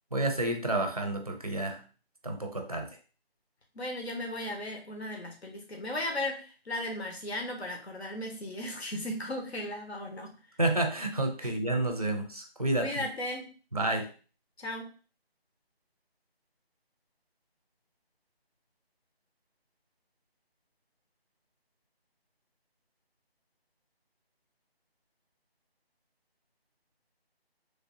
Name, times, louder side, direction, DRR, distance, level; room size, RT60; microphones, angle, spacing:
voice 1, 0.1-1.8 2.2-3.0 10.6-12.9 13.7-14.1, right 2 dB, 40° right, 4 dB, 0.4 m, -30 dB
voice 2, 3.7-10.4 11.4-11.5 12.8-13.5 14.6-14.9, left 1 dB, 80° left, 2 dB, 1.0 m, -36 dB
3.2 x 2.6 x 2.6 m, 0.35 s
figure-of-eight pair, 175°, 31 cm